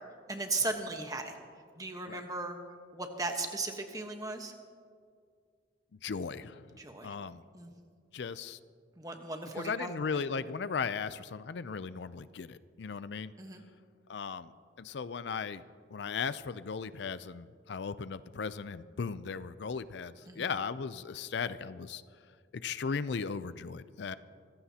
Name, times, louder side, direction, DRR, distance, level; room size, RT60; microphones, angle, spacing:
voice 1, 0.3-1.3 1.8-2.6 2.9-4.5 6.8-7.1 7.5-7.7 9.0-10.5 13.4-13.6 20.3-20.5, right 3 dB, 20° right, 4 dB, 1.1 m, -37 dB
voice 2, 6.0-6.6 7.0-7.4 8.1-8.6 9.6-13.3 14.1-14.5 14.8-15.6 15.9-22.0 22.6-24.2, left 5 dB, 65° left, 14 dB, 0.4 m, -37 dB
25.0 x 15.5 x 2.9 m, 2.1 s
head